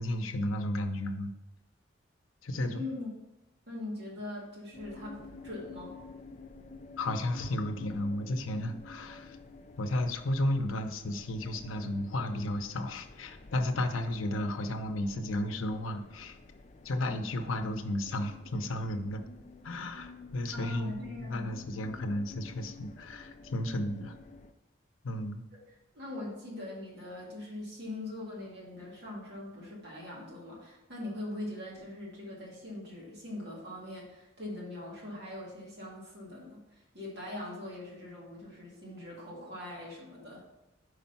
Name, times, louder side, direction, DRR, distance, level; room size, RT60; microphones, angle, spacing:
voice 1, 0.0-1.3 2.4-2.9 7.0-9.4 9.8-16.4 16.8-19.2 19.6-24.1 25.0-25.4, left 1 dB, 90° left, 6 dB, 0.7 m, -33 dB
voice 2, 2.5-3.1 3.7-5.2 5.4-6.0 20.5-21.7 25.9-40.6, left 1 dB, 55° right, -4 dB, 2.0 m, -42 dB
sound 1, 4.7-24.5, left 3 dB, 35° left, 0.4 m, -51 dB
5.3 x 4.9 x 5.7 m, 0.97 s
head